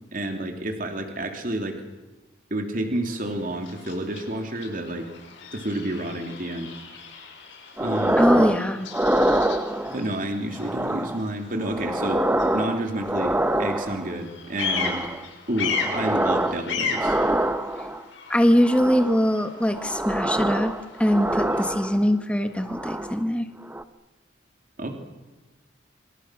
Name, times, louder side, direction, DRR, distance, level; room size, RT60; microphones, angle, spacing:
voice 1, 0.1-1.8 2.5-5.1 5.5-6.7 7.8-8.2 9.8-12.2 12.5-15.1 15.5-17.2 24.8-24.9, right 1 dB, 45° right, 4 dB, 3.0 m, -29 dB
Bird vocalization bird call bird song, 3.0-21.8, left 5 dB, 80° left, 6.4 m, -37 dB
sound 1, 7.8-8.6 8.9-10.1 10.6-11.3 11.6-14.1 14.6-15.3 15.6-16.6 16.9-18.0 18.6-19.2 19.7-22.2 22.6-23.2 23.6-23.8, right 1 dB, 10° right, 0.8 m, -25 dB
voice 2, 8.2-8.9 18.3-20.7 21.0-23.5, equal, 5° left, 7 dB, 1.3 m, -22 dB
26.5 x 26.5 x 6.3 m, 1.2 s
head